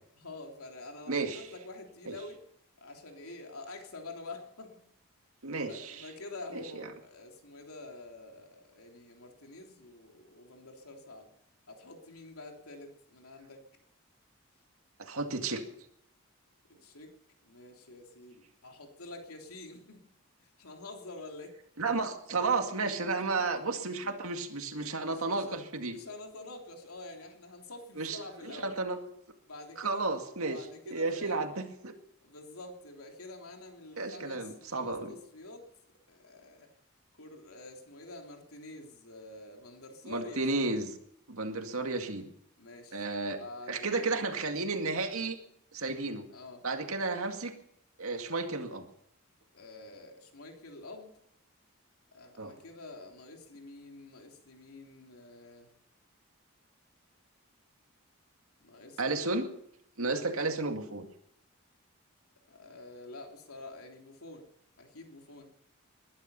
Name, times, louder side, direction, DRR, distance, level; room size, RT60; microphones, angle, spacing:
voice 1, 0.2-2.4 2.8-4.9 5.6-11.3 11.7-13.6 16.8-17.1 17.4-20.0 20.4-21.6 24.9-25.6 25.9-28.8 29.5-30.1 30.5-31.5 32.2-35.7 36.1-36.7 37.2-40.7 42.6-43.1 43.4-44.2 46.3-46.7 49.5-51.1 52.1-55.7 58.6-59.0 60.2-60.3 62.5-64.5 64.8-65.5, left 2 dB, 90° left, 2 dB, 3.3 m, -47 dB
voice 2, 1.1-1.4 2.0-2.2 5.4-6.0 6.5-6.9 15.0-15.6 21.8-26.0 28.0-29.0 29.8-30.6 30.9-31.9 34.0-35.1 40.0-41.0 41.3-42.3 42.9-43.4 43.7-45.4 45.7-46.3 46.6-47.5 48.0-48.9 52.4-52.6 59.0-59.5 60.0-61.1, right 3 dB, 80° right, 5 dB, 2.1 m, -32 dB
20.5 x 12.0 x 5.6 m, 0.74 s
head